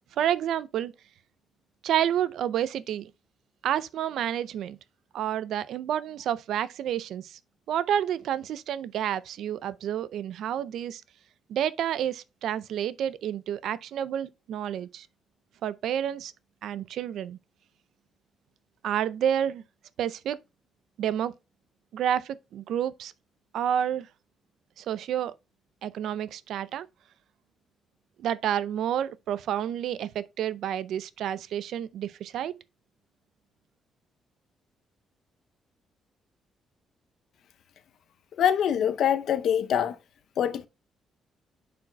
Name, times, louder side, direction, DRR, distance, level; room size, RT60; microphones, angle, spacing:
voice 1, 0.2-0.9 1.8-3.1 3.6-4.8 5.1-7.2 7.7-11.0 11.5-15.0 15.6-16.3 16.6-17.4 18.8-19.6 20.0-20.4 21.0-21.3 21.9-23.1 23.5-24.1 24.9-25.3 25.8-26.9 28.2-32.6, right 10 dB, 75° right, 0.5 m, -29 dB
voice 2, 38.4-39.9 40.4-40.7, left 9 dB, 70° left, 0.7 m, -24 dB
9.5 x 5.1 x 2.3 m
cardioid pair, 100°, 0 cm